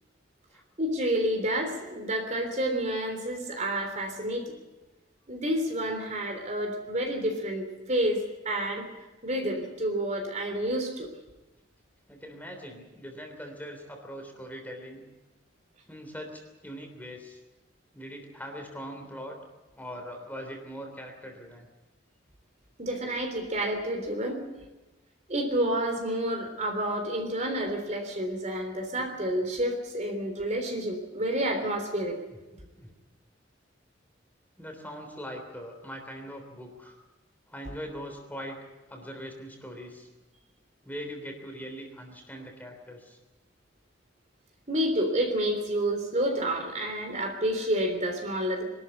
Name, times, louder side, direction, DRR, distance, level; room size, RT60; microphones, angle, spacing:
voice 1, 0.8-4.5 5.3-8.8 9.2-11.1 22.8-24.4 25.3-32.2 44.7-48.6, right 1 dB, 40° right, 4 dB, 3.4 m, -29 dB
voice 2, 12.1-15.0 15.9-17.4 17.9-19.4 19.7-21.7 32.5-32.9 34.6-36.9 37.5-40.1 40.8-43.2, equal, 10° left, 3 dB, 3.3 m, -41 dB
23.5 x 13.0 x 9.6 m, 1.1 s
head